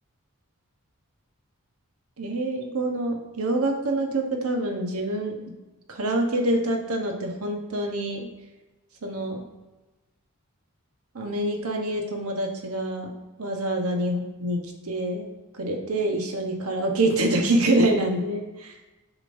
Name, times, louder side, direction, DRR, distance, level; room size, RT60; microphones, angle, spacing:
voice 1, 2.2-5.4 5.9-8.3 9.0-9.4 11.1-13.1 13.4-14.6 14.9-15.3 15.5-18.8, right 1 dB, 75° right, 2 dB, 1.1 m, -26 dB
7.1 x 5.1 x 2.6 m, 1.1 s
head